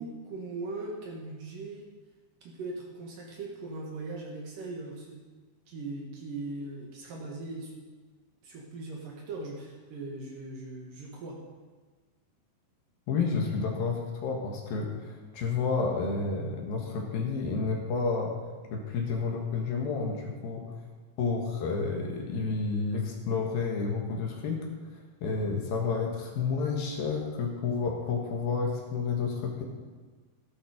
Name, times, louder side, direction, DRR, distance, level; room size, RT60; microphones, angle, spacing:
voice 1, 0.0-1.8 2.4-5.3 5.7-7.7 8.4-11.4, right 2 dB, 65° right, -1 dB, 3.2 m, -39 dB
voice 2, 13.1-18.4 18.7-20.7 21.2-24.7 25.2-29.6, left 4 dB, 75° left, 0 dB, 3.4 m, -30 dB
13.5 x 11.5 x 5.1 m, 1.4 s
omnidirectional pair, 4.3 m